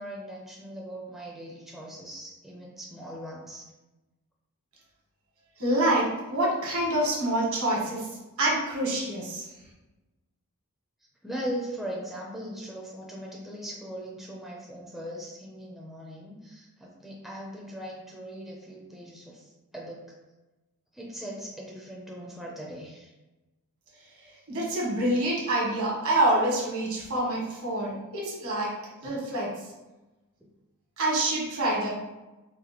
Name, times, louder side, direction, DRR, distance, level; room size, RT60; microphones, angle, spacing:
voice 1, 0.0-3.7 11.2-20.0 20.9-23.1 30.4-30.5, equal, ahead, -3 dB, 0.5 m, -39 dB
voice 2, 5.6-8.1 8.4-9.4 24.5-29.6 31.0-31.9, right 1 dB, 65° right, -4 dB, 1.4 m, -26 dB
4.0 x 2.6 x 2.9 m, 1.1 s
head